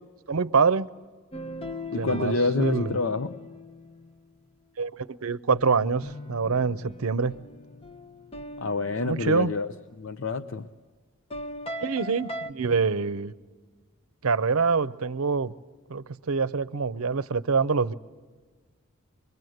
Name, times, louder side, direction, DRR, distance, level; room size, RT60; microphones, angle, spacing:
voice 1, 0.3-0.9 2.0-3.0 4.8-4.9 5.2-7.4 9.0-9.5 11.8-13.3 14.2-15.5 15.9-17.9, right 5 dB, 80° right, 0.6 m, -25 dB
sound 1, 1.3-4.2 5.5-10.0 11.3-12.5, left 1 dB, 25° left, 0.7 m, -40 dB
voice 2, 1.9-3.4 8.6-9.7 10.0-10.7, left 3 dB, 60° left, 0.6 m, -28 dB
25.0 x 22.5 x 7.8 m
head